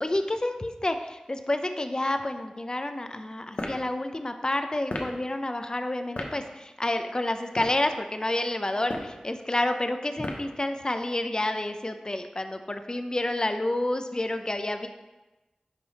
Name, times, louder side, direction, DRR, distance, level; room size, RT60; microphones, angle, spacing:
voice 1, 0.0-14.9, left 1 dB, 35° left, 7 dB, 0.6 m, -29 dB
sound 1, 3.5-3.8 4.9-5.1 6.2-6.3 7.4-7.8 8.8-9.2 10.2-10.5, left 2 dB, 75° left, 0.8 m, -34 dB
10.0 x 3.4 x 4.1 m, 1.1 s
wide cardioid pair, 45°, 2 cm